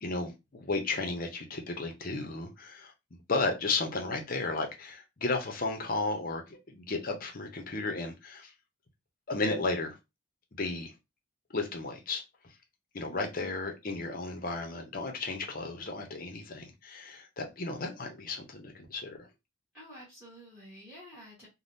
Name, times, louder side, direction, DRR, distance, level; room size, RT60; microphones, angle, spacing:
voice 1, 0.0-2.9 3.3-8.5 9.3-9.9 10.6-10.9 11.5-12.2 12.9-19.3, left 3 dB, 45° left, 0.7 m, -34 dB
voice 2, 13.1-13.5 19.7-21.5, equal, 5° right, 1.2 m, -50 dB
3.4 x 2.2 x 2.6 m
head